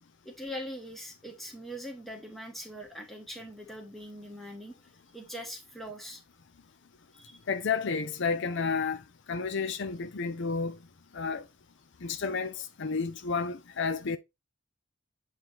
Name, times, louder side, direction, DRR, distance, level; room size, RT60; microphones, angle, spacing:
voice 1, 0.2-4.8 5.1-6.2 7.1-7.4, equal, ahead, 1.2 m, -42 dB
voice 2, 7.5-9.0 9.3-10.8 11.1-11.5 12.0-14.2, left 5 dB, 55° left, 0.6 m, -31 dB
7.9 x 3.2 x 4.0 m
head